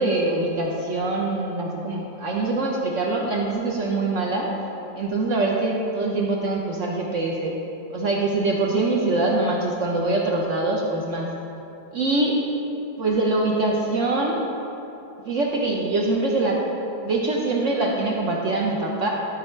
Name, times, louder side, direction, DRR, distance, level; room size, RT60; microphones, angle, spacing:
voice 1, 0.0-4.5 5.0-7.5 7.9-11.3 11.9-12.4 13.0-14.4 15.2-16.6 17.0-19.1, right 2 dB, 65° right, -1 dB, 0.7 m, -23 dB
12.0 x 4.1 x 4.3 m, 2.9 s
omnidirectional pair, 2.1 m